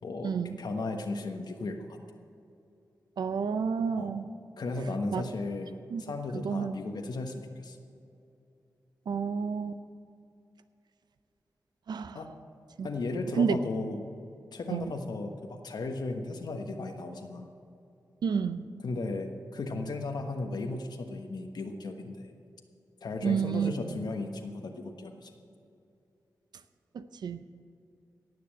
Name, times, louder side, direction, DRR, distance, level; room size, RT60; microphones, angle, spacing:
voice 1, 0.0-2.0 4.0-4.1 4.6-7.8 12.1-12.3 12.8-14.1 14.5-17.5 18.8-22.3 23.0-25.3, left 3 dB, 75° left, 4 dB, 1.3 m, -35 dB
voice 2, 3.2-4.3 5.1-5.3 5.9-6.0 6.3-6.8 9.1-9.8 11.9-12.2 12.8-12.9 13.4-13.6 14.7-14.9 18.2-18.7 23.2-24.0 26.9-27.4, right 6 dB, 85° right, 12 dB, 0.6 m, -30 dB
17.5 x 6.9 x 7.6 m, 2.6 s
cardioid pair, 50°, 7 cm